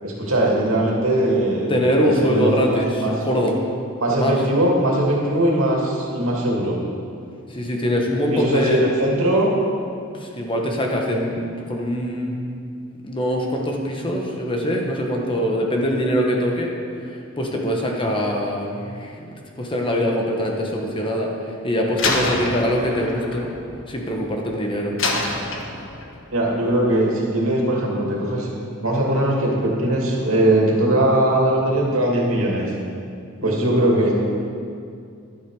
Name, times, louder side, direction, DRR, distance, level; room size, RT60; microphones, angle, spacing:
voice 1, 0.0-3.1 4.0-6.8 8.3-9.5 26.3-32.7 33.4-34.1, right 1 dB, 80° right, -2 dB, 2.5 m, -20 dB
voice 2, 1.7-2.9 3.2-3.6 4.1-4.3 7.5-8.8 10.1-12.3 13.0-16.7 17.0-19.3 19.6-21.3 21.6-23.5 23.9-24.9 33.4-33.7, equal, 25° left, 0 dB, 1.3 m, -23 dB
Slam, 22.0-24.4 25.0-26.2, left 3 dB, 65° left, 1.4 m, -26 dB
11.5 x 10.5 x 4.9 m, 2.4 s
head